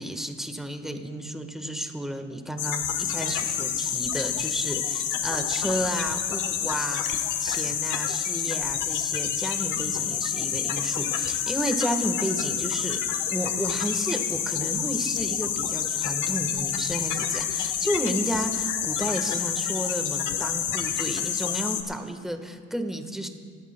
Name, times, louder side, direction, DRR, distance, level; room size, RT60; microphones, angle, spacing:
voice 1, 0.0-13.0 13.3-23.3, right 1 dB, ahead, 5 dB, 1.3 m, -32 dB
sound 1, 2.6-21.8, left 9 dB, 85° left, 1.1 m, -28 dB
26.0 x 12.0 x 2.2 m, 2.2 s
cardioid pair, 90°, 30 cm